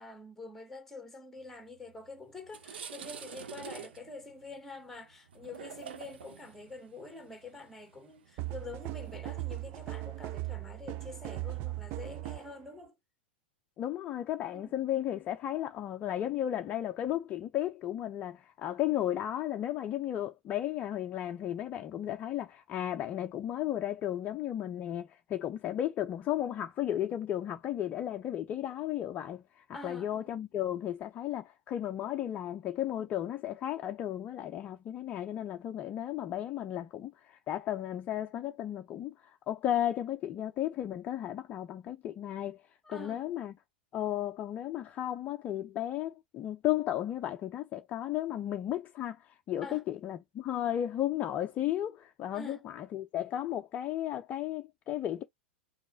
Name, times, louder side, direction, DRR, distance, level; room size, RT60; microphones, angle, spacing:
voice 1, 0.0-12.9 14.5-14.7 29.7-30.4 42.8-43.3 49.6-49.8 52.3-52.6, left 3 dB, 5° left, 1.4 m, -46 dB
sound 1, 1.9-2.0 2.4-9.7, right 7 dB, 60° right, 0.8 m, -48 dB
sound 2, 8.4-12.6, right 18 dB, 35° right, 0.5 m, -38 dB
voice 2, 13.8-42.6 42.9-43.5 43.9-55.2, left 12 dB, 25° left, 0.5 m, -34 dB
5.3 x 3.0 x 3.2 m
figure-of-eight pair, 95°, 6 cm